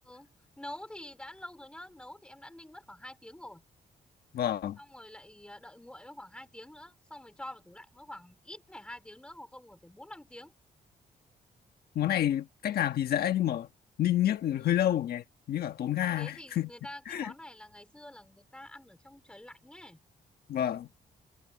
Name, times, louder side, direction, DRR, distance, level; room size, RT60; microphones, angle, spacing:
voice 1, 0.1-3.6 4.8-10.5 14.6-14.8 16.2-20.0, left 1 dB, 5° left, 3.7 m, -47 dB
voice 2, 4.3-4.8 11.9-13.7 14.0-16.7 17.1-17.3 20.5-20.9, left 11 dB, 80° left, 1.3 m, -29 dB
wide cardioid pair, 145°, 16 cm